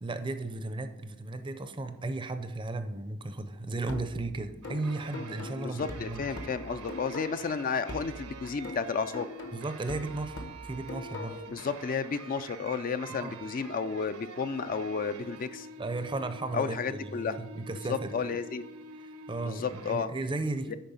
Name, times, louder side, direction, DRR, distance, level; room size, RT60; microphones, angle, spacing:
voice 1, 0.0-6.2 9.5-11.5 13.2-13.4 15.8-18.2 19.0-20.7, right 2 dB, 20° right, 10 dB, 0.5 m, -35 dB
sound 1, 3.9-7.6 7.9-11.6, left 2 dB, 55° left, 1.1 m, -42 dB
sound 2, 4.6-19.9, right 4 dB, 85° right, 0.8 m, -47 dB
voice 2, 5.6-9.3 11.5-15.7 16.5-17.4 17.9-18.6 19.4-20.1 20.7-20.8, left 5 dB, 40° left, 11 dB, 0.4 m, -32 dB
10.5 x 4.4 x 5.4 m, 0.97 s
head